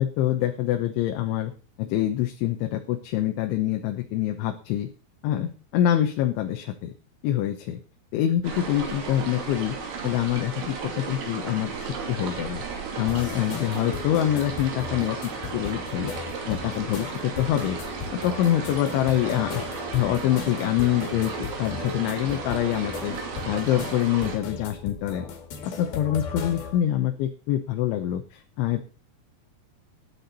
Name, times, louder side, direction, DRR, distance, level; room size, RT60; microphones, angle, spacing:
voice 1, 0.0-1.5 1.8-4.9 5.2-6.9 7.2-7.8 8.1-9.8 10.0-16.1 16.5-17.8 18.1-19.6 19.9-23.2 23.4-25.3 25.6-28.8, left 12 dB, 85° left, 5 dB, 3.4 m, -25 dB
sound 1, 8.4-24.4, right 5 dB, 60° right, 4.7 m, -35 dB
sound 2, 13.1-26.8, left 5 dB, 60° left, 3.7 m, -37 dB
17.5 x 10.0 x 4.2 m, 0.36 s
omnidirectional pair, 5.3 m